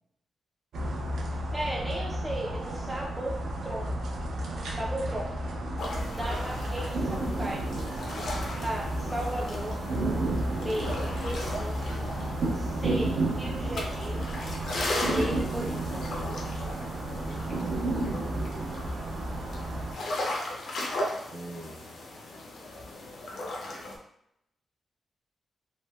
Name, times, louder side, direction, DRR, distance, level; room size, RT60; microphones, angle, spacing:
sound 1, 0.7-19.9, right 1 dB, 75° right, 0.5 m, -32 dB
voice 1, 1.5-4.0 4.7-5.4 6.1-7.7 8.6-9.8 10.6-12.0 12.5-14.3 14.9-16.1, right 1 dB, 5° right, -3 dB, 0.3 m, -36 dB
sound 2, 5.8-24.0, left 1 dB, 65° left, 0.5 m, -37 dB
voice 2, 17.1-19.7 21.3-22.0, right 2 dB, 55° right, -2 dB, 0.8 m, -45 dB
3.0 x 2.6 x 2.2 m, 0.78 s
wide cardioid pair, 150°, 0 cm